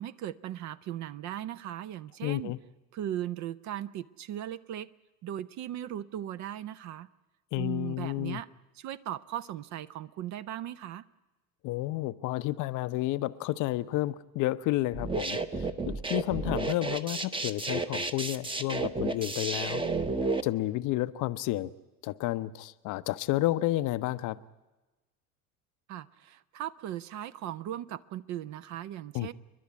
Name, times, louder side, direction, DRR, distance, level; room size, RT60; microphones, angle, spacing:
voice 1, 0.0-2.5 2.9-4.9 5.2-7.1 7.5-8.5 8.7-11.0 25.9-29.3, right 11 dB, 40° right, 15 dB, 0.6 m, -38 dB
voice 2, 2.2-2.6 7.5-8.4 11.6-19.8 20.4-21.7 22.0-24.4 29.1-29.3, left 16 dB, 40° left, 14 dB, 0.7 m, -31 dB
sound 1, 14.9-20.4, right 3 dB, 10° right, 0.9 m, -31 dB
29.0 x 11.5 x 9.3 m, 1.1 s
figure-of-eight pair, 65°, 47 cm